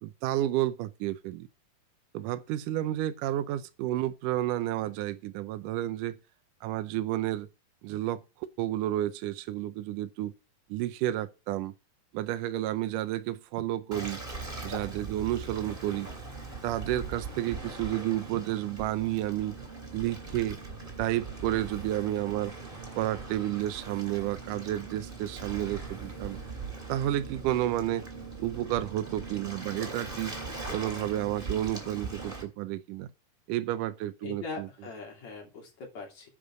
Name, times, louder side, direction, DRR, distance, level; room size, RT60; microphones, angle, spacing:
voice 1, 0.0-1.5 2.1-6.2 6.6-7.5 7.8-10.3 10.7-11.7 12.1-14.2 14.6-16.1 16.6-19.6 19.9-20.6 21.0-22.5 23.0-26.4 26.9-28.1 28.4-30.4 30.7-33.1 33.5-34.7, right 13 dB, 80° right, 2.0 m, -31 dB
Waves surf, 13.9-32.4, right 3 dB, 15° right, 2.3 m, -40 dB
voice 2, 34.2-36.3, left 4 dB, 50° left, 4.0 m, -41 dB
10.0 x 5.3 x 6.3 m
omnidirectional pair, 4.3 m